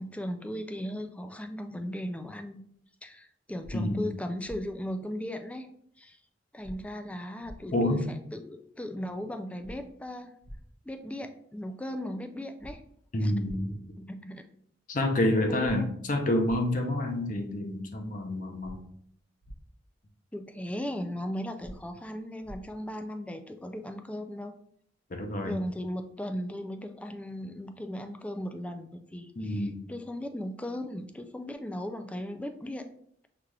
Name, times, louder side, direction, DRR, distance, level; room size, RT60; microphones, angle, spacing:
voice 1, 0.0-2.6 3.0-5.7 6.0-6.2 6.5-10.3 10.9-12.8 13.2-13.3 14.0-14.5 15.3-15.9 20.3-24.5 25.4-32.9, equal, 5° left, 6 dB, 0.3 m, -37 dB
sound 1, 3.6-3.7 4.4-4.6 6.6-6.7 7.4-7.6 9.6-9.7 10.4-10.6 12.6-12.7 13.4-13.6 15.6-15.7 16.4-16.6 18.6-18.7 19.4-19.6 21.6-21.7 22.4-22.6, equal, 85° left, 1.6 m, -44 dB
voice 2, 3.7-4.1 7.7-8.1 13.1-13.8 14.9-18.8 25.1-25.6 29.4-29.8, left 1 dB, 45° left, 3 dB, 0.7 m, -28 dB
5.7 x 2.4 x 3.2 m, 0.65 s
head